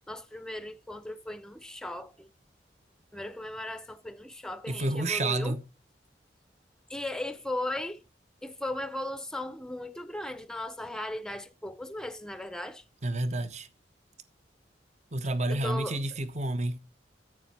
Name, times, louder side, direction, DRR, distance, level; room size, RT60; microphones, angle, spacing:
voice 1, 0.1-2.3 3.1-5.6 6.9-8.0 8.4-12.8 15.5-16.0, left 1 dB, 5° left, 0.6 m, -37 dB
voice 2, 4.7-5.6 13.0-13.7 15.1-16.8, right 2 dB, 40° right, 1.0 m, -30 dB
9.8 x 8.3 x 4.3 m
head